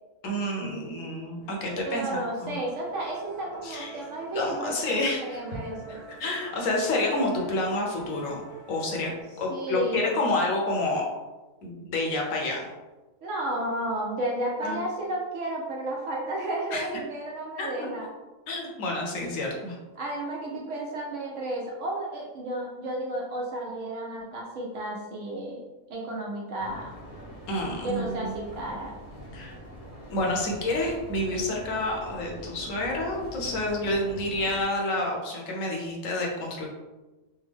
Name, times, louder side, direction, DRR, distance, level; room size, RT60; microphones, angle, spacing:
voice 1, 0.2-2.5 3.6-4.0 4.3-5.2 6.2-8.4 8.7-9.1 9.4-11.0 11.6-12.7 14.6-14.8 16.7-16.9 17.6-17.9 18.5-19.8 20.5-20.6 27.5-28.3 29.3-29.6 30.1-36.7, left 2 dB, 70° left, -1 dB, 1.1 m, -29 dB
Musical instrument, 1.4-9.2, right 3 dB, 80° right, 1.4 m, -46 dB
voice 2, 1.8-6.0 9.5-10.2 13.2-18.1 20.0-27.0 27.8-29.0, right 1 dB, 65° right, -2 dB, 0.9 m, -32 dB
sound 1, 26.6-34.6, equal, 35° left, 0.6 m, -43 dB
3.5 x 2.0 x 3.3 m, 1.1 s
omnidirectional pair, 1.5 m